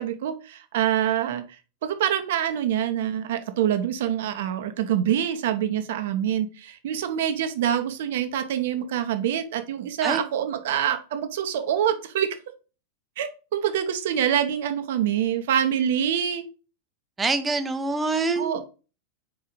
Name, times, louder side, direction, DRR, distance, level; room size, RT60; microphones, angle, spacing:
voice 1, 0.0-1.4 1.8-12.3 13.2-16.4 18.4-18.6, right 10 dB, 55° right, 8 dB, 0.9 m, -25 dB
voice 2, 17.2-18.6, right 3 dB, 15° right, 9 dB, 0.9 m, -25 dB
4.8 x 4.6 x 5.2 m, 0.34 s
figure-of-eight pair, 90°, 0 cm